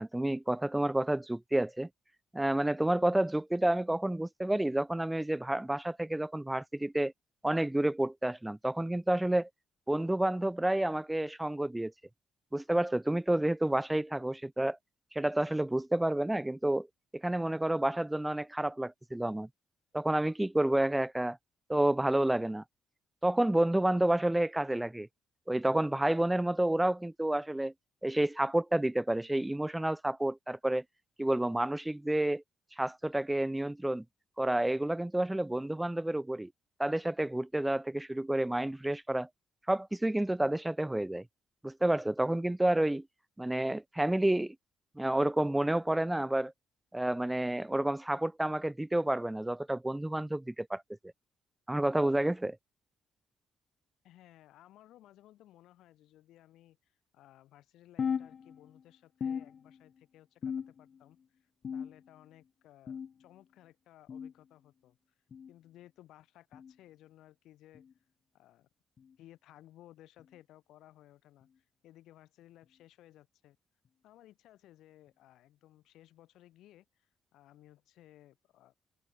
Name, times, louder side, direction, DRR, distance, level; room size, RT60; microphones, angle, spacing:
voice 1, 0.0-1.9 2.3-7.1 7.4-9.5 9.9-11.9 12.5-14.8 15.1-16.9 17.1-19.5 19.9-21.4 21.7-22.6 23.2-25.1 25.5-27.7 28.0-30.8 31.2-32.4 32.8-34.0 34.4-36.5 36.8-39.3 39.7-41.2 41.6-43.1 43.4-44.6 45.0-46.5 46.9-50.8 51.7-52.6, right 1 dB, 10° right, 0.4 m, -30 dB
voice 2, 54.0-65.0 65.5-67.9 68.3-68.7 69.2-73.6 74.0-78.7, left 14 dB, 85° left, 3.9 m, -59 dB
sound 1, 58.0-58.8 59.2-60.0 60.4-61.0 61.6-62.3 62.9-63.2 64.1-64.3 65.3-65.5 66.5-66.7 67.7-67.9 69.0-69.2 70.2-70.4 71.4-71.5 72.6-72.7, left 7 dB, 50° left, 0.7 m, -38 dB
cardioid pair, 90°, 0 cm